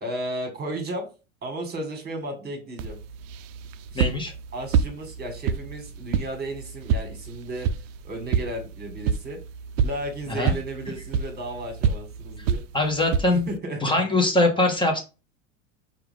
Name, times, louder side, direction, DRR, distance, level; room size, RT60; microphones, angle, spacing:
voice 1, 0.0-1.1 1.4-3.0 3.9-4.0 4.5-7.7 8.0-9.4 9.8-12.6 13.3-13.8, right 1 dB, 25° right, 5 dB, 1.6 m, -34 dB
sound 1, 2.8-13.6, right 6 dB, 65° right, 0.5 m, -29 dB
voice 2, 3.9-4.3 10.3-10.5 12.7-13.5 13.8-15.0, left 2 dB, 10° left, 2 dB, 0.9 m, -22 dB
4.6 x 2.5 x 3.3 m, 0.32 s
hypercardioid pair, 105°, 41 cm